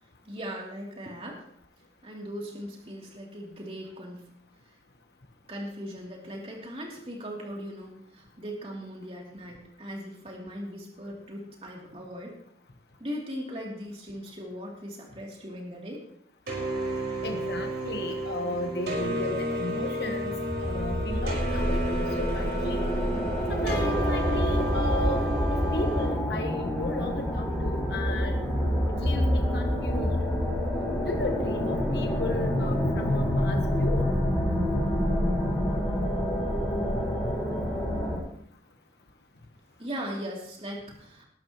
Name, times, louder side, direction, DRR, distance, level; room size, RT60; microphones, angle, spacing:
voice 1, 0.2-1.4 2.0-4.3 5.5-12.4 13.0-16.0 39.8-41.3, equal, 35° right, -2 dB, 3.1 m, -39 dB
sound 1, 16.5-26.1, equal, 70° right, 5.1 m, -32 dB
voice 2, 17.2-20.3 20.6-21.8 22.2-22.9 23.5-28.4 29.0-30.2 31.1-34.1, left 1 dB, 70° left, 3 dB, 1.3 m, -35 dB
sound 2, 20.1-38.2, equal, ahead, 7.3 m, -27 dB
20.0 x 12.5 x 3.1 m, 0.67 s
head